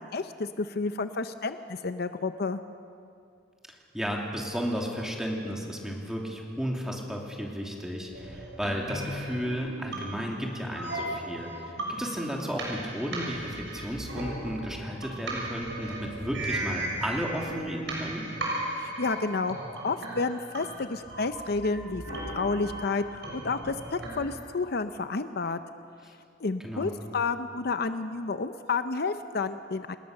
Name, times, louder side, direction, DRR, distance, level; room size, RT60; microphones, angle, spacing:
voice 1, 0.0-2.6 18.8-19.6 19.8-25.6 26.4-30.0, left 4 dB, 60° left, 10 dB, 0.7 m, -30 dB
voice 2, 3.9-18.2 26.6-26.9, equal, 5° right, -1 dB, 3.1 m, -33 dB
sound 1, 8.1-24.3, right 1 dB, 75° right, 6.5 m, -36 dB
29.0 x 19.0 x 6.7 m, 2.5 s
head